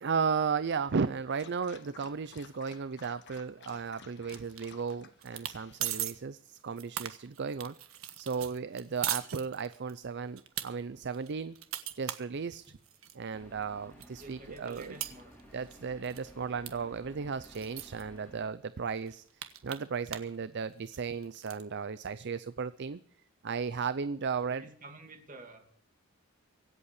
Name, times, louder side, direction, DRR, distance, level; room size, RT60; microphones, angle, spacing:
voice 1, 0.0-7.8 8.2-11.6 12.0-12.7 13.1-15.0 15.5-23.0 23.4-24.7, right 5 dB, 55° right, 15 dB, 0.5 m, -35 dB
Dog, 1.3-6.2, left 6 dB, 60° left, 1.4 m, -55 dB
sound 1, 4.3-4.9 5.2-5.6 5.8-6.1 6.6-9.9 10.4-10.7 11.1-13.2 13.6-13.7 14.0-15.8 16.0-16.3 16.7-16.8 17.0-17.1 17.4-18.0 18.6-18.7 19.0-20.4 20.6-21.6, right 11 dB, 90° right, 1.4 m, -39 dB
sound 2, 13.3-18.5, equal, 10° left, 5.9 m, -55 dB
voice 2, 14.2-15.4 24.5-25.8, right 2 dB, 40° right, 5 dB, 2.7 m, -50 dB
24.5 x 8.4 x 4.9 m, 0.64 s
head